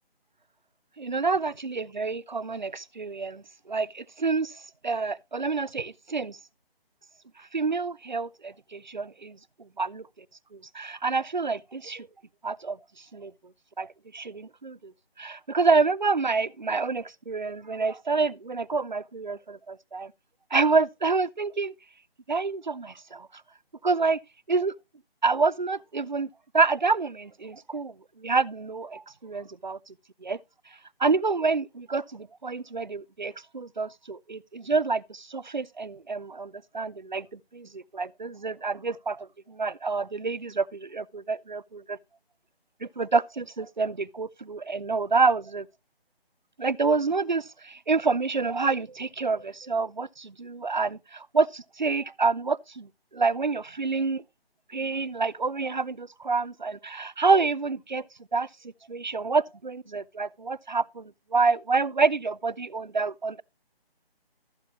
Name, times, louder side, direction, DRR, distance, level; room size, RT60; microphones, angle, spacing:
voice 1, 1.0-3.4 3.7-6.4 7.5-9.4 9.8-10.0 10.5-12.1 12.4-12.8 13.1-13.3 13.8-14.9 15.2-20.1 20.5-21.7 22.3-23.3 23.8-24.2 24.5-24.7 25.2-26.3 26.5-27.9 28.2-29.8 30.2-30.4 31.0-37.3 37.5-42.0 42.8-45.7 46.6-54.2 54.7-58.0 58.3-58.5 58.9-63.4, right 4 dB, 50° right, 0.4 m, -27 dB
14.0 x 8.5 x 2.9 m
figure-of-eight pair, 180°, 31 cm